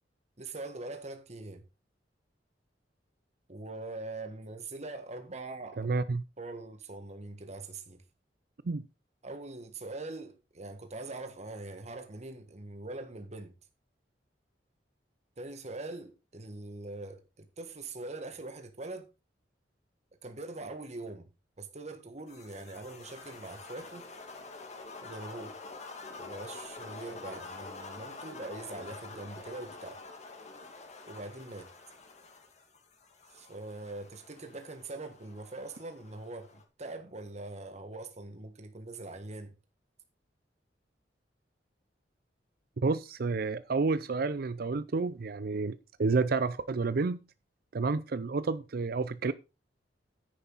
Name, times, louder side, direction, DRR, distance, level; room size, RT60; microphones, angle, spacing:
voice 1, 0.4-1.6 3.5-5.9 6.4-8.0 9.2-13.5 15.4-19.1 20.2-21.3 21.6-24.0 25.0-25.6 26.2-30.0 31.1-31.7 33.3-39.5, right 2 dB, 40° right, 1.6 m, -42 dB
voice 2, 5.8-6.2 8.6-8.8 42.8-47.2 47.7-49.3, right 4 dB, 55° right, 0.5 m, -30 dB
sound 1, 22.3-36.6, left 3 dB, 40° left, 2.1 m, -47 dB
10.0 x 9.3 x 4.0 m
head